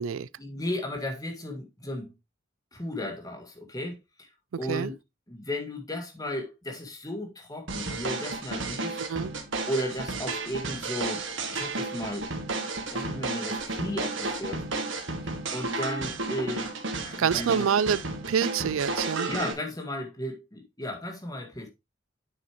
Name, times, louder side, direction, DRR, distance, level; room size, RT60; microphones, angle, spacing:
voice 1, 0.4-2.1 2.7-4.3 4.6-4.9 5.3-9.0 9.7-11.3 11.5-12.3 12.9-14.7 15.5-16.7 17.0-17.7 19.3-21.7, left 1 dB, 20° left, 1.8 m, -34 dB
sound 1, 7.7-19.5, right 3 dB, 70° right, 1.8 m, -32 dB
voice 2, 17.2-18.0 18.3-19.3, right 7 dB, 85° right, 0.4 m, -26 dB
8.5 x 6.7 x 3.0 m
head